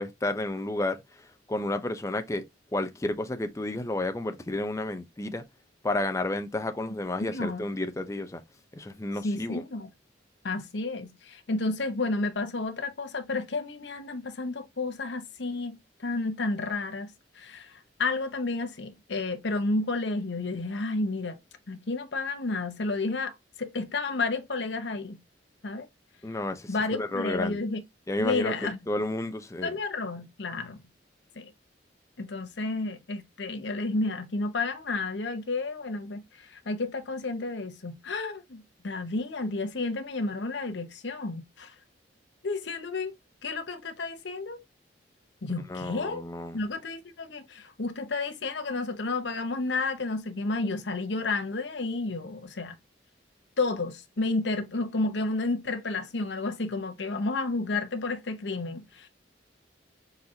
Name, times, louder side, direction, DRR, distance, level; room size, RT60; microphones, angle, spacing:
voice 1, 0.0-2.4 2.7-5.4 5.8-8.4 8.7-9.6 26.2-27.6 28.1-28.5 28.9-29.8 45.7-46.6, left 2 dB, 15° left, 0.5 m, -31 dB
voice 2, 7.2-7.6 9.2-9.9 10.4-17.7 18.0-21.4 21.7-25.2 25.6-25.9 26.7-27.8 28.2-28.8 29.6-30.8 31.4-31.5 32.2-41.7 42.4-43.1 43.4-44.6 45.4-46.2 46.5-52.8 53.6-59.1, left 3 dB, 70° left, 0.8 m, -31 dB
4.3 x 4.0 x 2.7 m
head